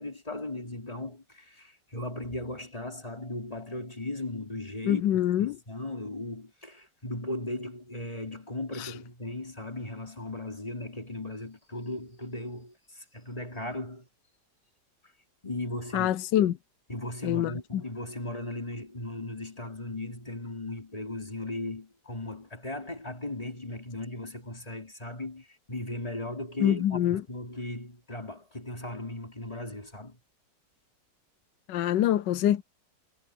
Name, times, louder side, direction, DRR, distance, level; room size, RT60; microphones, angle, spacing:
voice 1, 0.0-5.0 5.4-14.1 15.4-16.1 16.9-30.2, left 1 dB, 20° left, 3.6 m, -37 dB
voice 2, 4.9-5.6 8.7-8.9 15.9-16.6 17.2-17.8 26.6-27.2 31.7-32.6, left 11 dB, 85° left, 1.3 m, -25 dB
omnidirectional pair, 1.9 m